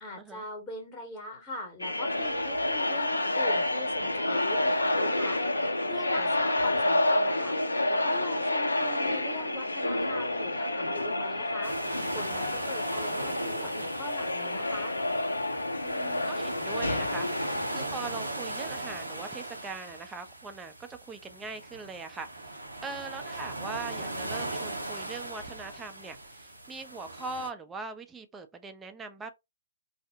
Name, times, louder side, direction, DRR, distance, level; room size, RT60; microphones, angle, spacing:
voice 1, 0.0-5.4 5.9-7.6 7.9-14.9, left 2 dB, 15° left, 0.8 m, -41 dB
sound 1, 1.8-17.9, left 1 dB, 90° left, 0.5 m, -29 dB
sound 2, 11.6-27.5, right 2 dB, 85° right, 0.7 m, -39 dB
voice 2, 15.8-29.3, right 4 dB, 10° right, 0.3 m, -41 dB
2.6 x 2.0 x 2.6 m
figure-of-eight pair, 130°, 0 cm